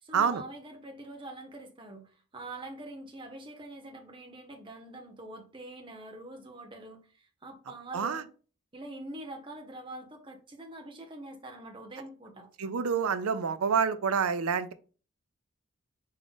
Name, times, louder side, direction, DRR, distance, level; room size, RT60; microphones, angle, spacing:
voice 1, 0.0-8.3 8.7-12.5, right 1 dB, 25° right, 0.8 m, -44 dB
voice 2, 12.6-14.7, right 6 dB, 90° right, 0.5 m, -27 dB
3.8 x 3.6 x 3.5 m
head